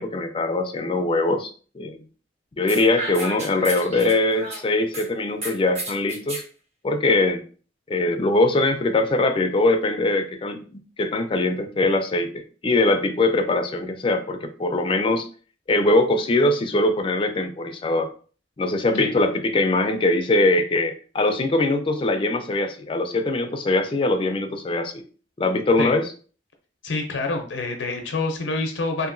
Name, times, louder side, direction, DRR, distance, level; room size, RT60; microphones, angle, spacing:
voice 1, 0.0-1.5 1.7-2.0 2.6-6.4 6.8-7.4 7.9-15.3 15.7-18.1 18.6-25.0 25.4-26.1, left 2 dB, 30° left, 7 dB, 0.3 m, -22 dB
sound 1, 2.7-5.0 5.4-6.4, right 1 dB, 40° right, 0.9 m, -33 dB
voice 2, 26.8-29.1, left 3 dB, 85° left, 4 dB, 0.5 m, -27 dB
2.8 x 2.5 x 2.5 m, 0.40 s
head